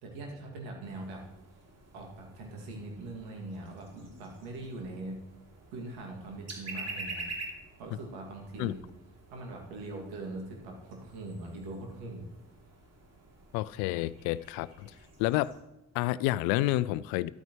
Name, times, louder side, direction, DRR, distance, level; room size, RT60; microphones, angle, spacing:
voice 1, 0.0-1.2 1.9-5.2 5.7-7.2 7.8-8.8 9.3-12.3, right 2 dB, 70° right, 2.4 m, -41 dB
sound 1, 0.8-15.6, right 2 dB, 40° right, 2.9 m, -47 dB
voice 2, 13.5-14.9 15.2-15.5 15.9-17.3, left 16 dB, 65° left, 0.5 m, -29 dB
13.0 x 12.5 x 3.1 m
figure-of-eight pair, 45°, 39 cm